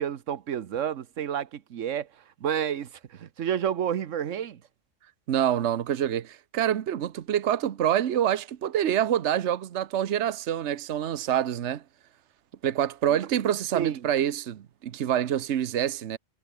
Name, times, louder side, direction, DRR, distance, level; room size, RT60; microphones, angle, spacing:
voice 1, 0.0-2.1 2.4-4.6 13.7-14.0, right 9 dB, 90° right, 1.3 m, -30 dB
voice 2, 5.3-11.8 12.6-16.2, right 10 dB, 70° right, 1.2 m, -26 dB
omnidirectional pair, 1.2 m